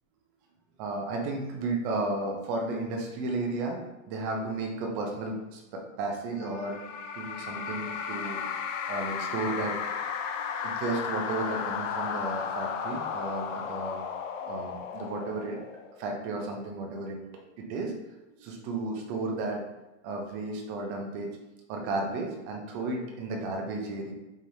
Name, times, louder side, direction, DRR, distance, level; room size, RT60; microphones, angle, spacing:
voice 1, 0.8-3.8 4.1-6.8 7.1-8.4 8.9-9.7 10.6-14.0 14.4-15.6 16.0-17.2 17.6-17.9 18.4-19.6 20.0-21.4 21.7-24.1, right 2 dB, 25° right, 1 dB, 0.6 m, -33 dB
sound 1, 6.4-16.1, left 7 dB, 65° left, 0.6 m, -34 dB
4.9 x 3.0 x 2.7 m, 1.0 s
supercardioid pair, 155°, 41 cm